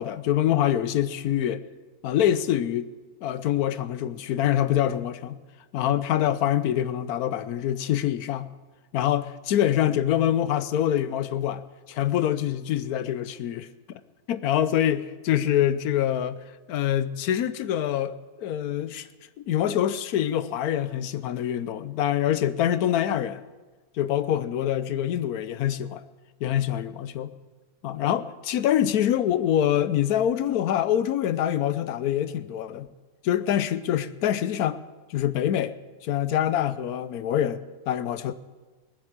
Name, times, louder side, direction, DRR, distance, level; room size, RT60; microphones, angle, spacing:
voice 1, 0.0-1.6 2.0-2.9 3.2-5.4 5.7-8.5 8.9-11.6 11.9-13.7 14.3-16.4 16.7-19.1 19.4-23.4 24.0-26.0 26.4-27.3 27.8-32.9 33.2-34.8 35.1-35.8 36.0-38.3, left 11 dB, 80° left, 1.2 m, -25 dB
19.0 x 8.0 x 7.3 m
omnidirectional pair, 1.6 m